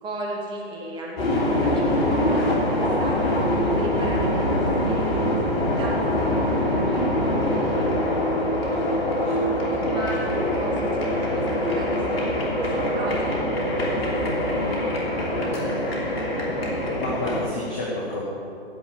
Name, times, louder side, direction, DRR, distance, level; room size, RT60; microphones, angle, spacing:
voice 1, 0.0-3.4 3.8-8.4 8.7-8.9 9.8-12.5 12.9-14.0 14.4-15.9, right 1 dB, 15° right, -2 dB, 2.1 m, -35 dB
sound 1, 1.2-17.4, left 1 dB, 65° left, 3.3 m, -24 dB
voice 2, 9.2-9.8 10.2-10.3 17.0-18.2, left 1 dB, 10° left, -5 dB, 0.3 m, -31 dB
15.5 x 5.5 x 8.8 m, 2.8 s
figure-of-eight pair, 135°, 33 cm